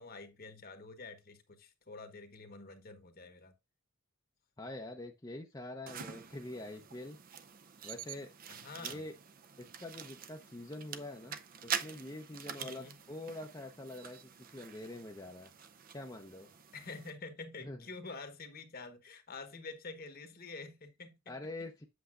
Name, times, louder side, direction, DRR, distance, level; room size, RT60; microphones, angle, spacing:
voice 1, 0.0-3.5 8.5-9.0 12.6-13.0 16.7-21.4, left 3 dB, 45° left, 1.2 m, -48 dB
voice 2, 4.6-7.2 7.8-8.3 8.8-9.1 9.6-11.4 11.6-15.5 15.9-16.5 17.6-17.8 21.3-21.8, left 1 dB, 20° left, 0.6 m, -45 dB
sound 1, 5.9-17.1, right 8 dB, 45° right, 0.6 m, -45 dB
8.0 x 6.9 x 2.5 m
head